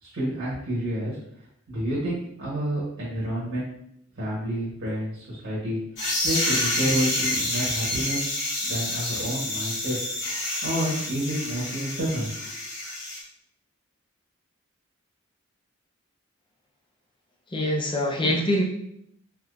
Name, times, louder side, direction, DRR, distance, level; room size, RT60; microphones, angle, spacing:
voice 1, 0.0-1.2 1.7-3.7 4.1-8.2 8.6-10.0 10.6-12.3, equal, 70° right, -8 dB, 1.1 m, -29 dB
sound 1, 6.0-13.2, left 1 dB, 55° left, 1.2 m, -28 dB
voice 2, 17.5-18.6, left 1 dB, 25° left, -1 dB, 0.5 m, -24 dB
3.6 x 2.7 x 2.4 m, 0.73 s
head